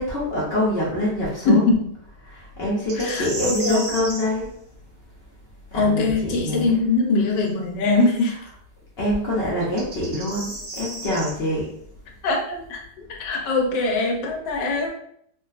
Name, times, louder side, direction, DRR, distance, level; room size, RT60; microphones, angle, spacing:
voice 1, 0.0-1.6 2.3-4.5 5.7-6.8 9.0-11.7, left 1 dB, 50° left, -6 dB, 0.7 m, -25 dB
voice 2, 1.5-1.8 3.0-3.8 5.7-8.4 12.2-12.8 13.1-14.9, left 3 dB, 90° left, 2 dB, 1.3 m, -22 dB
sound 1, 2.9-4.3 7.4-7.5 9.6-11.3, right 2 dB, 70° right, 1.6 m, -33 dB
3.7 x 2.3 x 2.4 m, 0.68 s
omnidirectional pair, 1.8 m